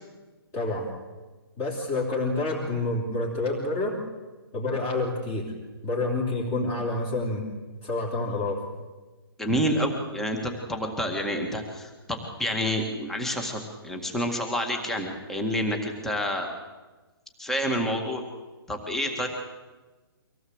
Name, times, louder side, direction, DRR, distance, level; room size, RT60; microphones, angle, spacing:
voice 1, 0.5-0.9 1.6-4.0 4.5-5.5 5.8-7.5 7.8-8.6, left 2 dB, 20° left, -1 dB, 3.1 m, -28 dB
voice 2, 9.4-16.5 17.4-18.2 18.7-19.3, equal, 5° left, 3 dB, 1.9 m, -28 dB
24.5 x 17.0 x 8.0 m, 1.2 s
hypercardioid pair, 170°, 13 cm